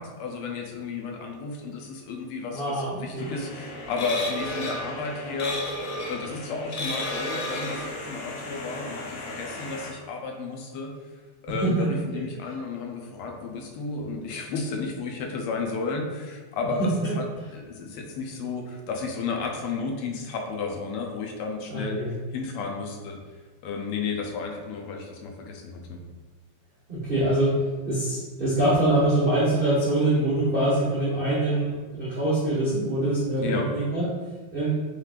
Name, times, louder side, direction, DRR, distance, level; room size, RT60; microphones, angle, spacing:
voice 1, 0.0-5.6 6.1-10.9 11.4-16.8 17.2-17.3 17.5-22.0 22.3-23.2 23.6-26.0 33.4-33.7, left 4 dB, 90° left, 2 dB, 1.6 m, -32 dB
voice 2, 2.5-3.3 11.6-12.0 16.8-17.1 21.7-22.1 26.9-27.6 27.8-34.1 34.5-34.8, right 1 dB, 65° right, -9 dB, 0.5 m, -24 dB
sound 1, 3.2-9.9, left 1 dB, 70° left, 0.8 m, -34 dB
4.8 x 3.3 x 2.4 m, 1.4 s
omnidirectional pair, 2.4 m